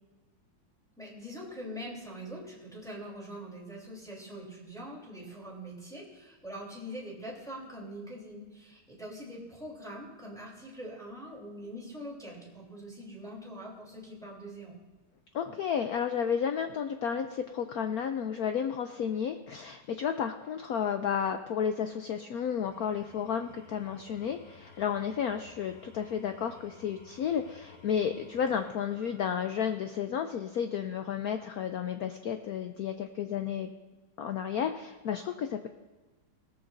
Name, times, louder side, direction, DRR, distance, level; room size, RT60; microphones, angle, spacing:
voice 1, 1.0-14.8, equal, ahead, -4 dB, 3.1 m, -43 dB
voice 2, 15.3-33.7 34.2-35.7, left 8 dB, 90° left, 7 dB, 0.8 m, -32 dB
Engine / Tools, 22.5-29.9, left 3 dB, 50° left, 4.2 m, -56 dB
18.0 x 13.5 x 2.6 m, 1.2 s
omnidirectional pair, 2.2 m